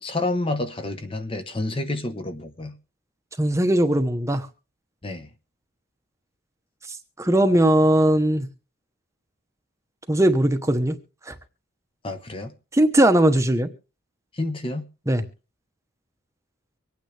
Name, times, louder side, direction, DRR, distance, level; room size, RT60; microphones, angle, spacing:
voice 1, 0.0-2.8 5.0-5.3 12.0-12.5 14.3-14.9, left 2 dB, 25° left, 1.0 m, -29 dB
voice 2, 3.4-4.5 7.2-8.5 10.1-11.0 11.3-11.4 12.7-13.7 15.1-15.2, right 1 dB, 15° right, 0.9 m, -19 dB
25.0 x 9.2 x 3.3 m
head